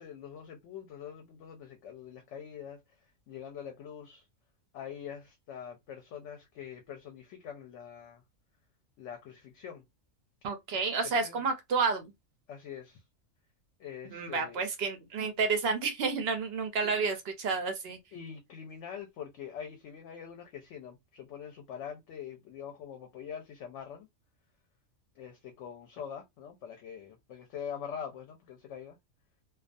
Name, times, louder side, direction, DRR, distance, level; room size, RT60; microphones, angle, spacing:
voice 1, 0.0-2.8 3.3-4.3 4.7-8.2 9.0-9.8 11.1-11.4 12.5-13.0 13.8-14.6 16.8-16.9 18.1-24.1 25.2-29.0, left 8 dB, 70° left, 0.8 m, -44 dB
voice 2, 10.4-12.0 14.1-18.0, right 4 dB, 65° right, 0.6 m, -30 dB
2.3 x 2.3 x 2.5 m
omnidirectional pair, 1.4 m